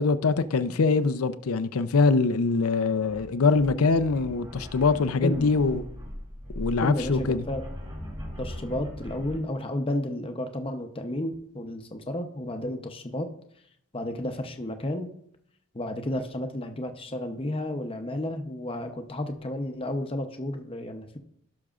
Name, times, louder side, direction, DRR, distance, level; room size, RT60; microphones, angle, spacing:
voice 1, 0.0-5.8 6.6-7.4, left 4 dB, 75° left, 0.5 m, -23 dB
sound 1, 3.1-9.4, equal, 25° right, 2.2 m, -39 dB
voice 2, 6.8-7.6 8.4-13.3 13.9-15.1 15.7-21.2, left 1 dB, 25° left, 0.7 m, -32 dB
16.5 x 6.2 x 2.4 m
head